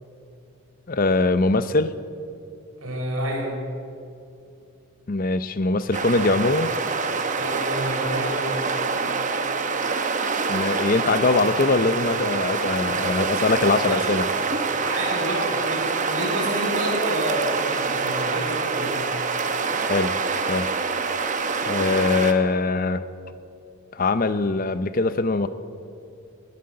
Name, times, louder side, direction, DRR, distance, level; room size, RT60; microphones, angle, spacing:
voice 1, 0.9-1.9 5.1-6.7 10.5-14.3 19.7-20.2 20.5-20.7 21.6-23.0 23.9-25.5, left 3 dB, 40° left, 13 dB, 0.6 m, -22 dB
voice 2, 2.8-3.5 7.3-8.7 13.9-14.4 14.8-19.0, right 1 dB, 70° right, -1 dB, 4.8 m, -29 dB
sound 1, 5.9-22.3, right 4 dB, 35° right, 0.9 m, -26 dB
19.0 x 9.5 x 7.9 m, 2.6 s
head